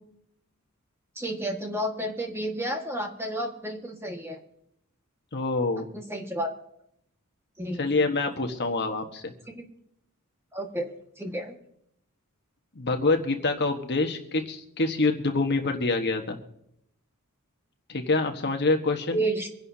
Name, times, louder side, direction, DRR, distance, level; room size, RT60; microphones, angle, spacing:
voice 1, 1.2-4.4 5.9-6.5 7.6-8.0 9.6-9.7 10.5-11.5 19.1-19.5, right 1 dB, 10° right, 2 dB, 1.7 m, -31 dB
voice 2, 5.3-5.9 7.8-9.3 12.7-16.4 17.9-19.2, left 3 dB, 50° left, 5 dB, 1.4 m, -26 dB
25.0 x 11.0 x 2.8 m, 0.76 s
head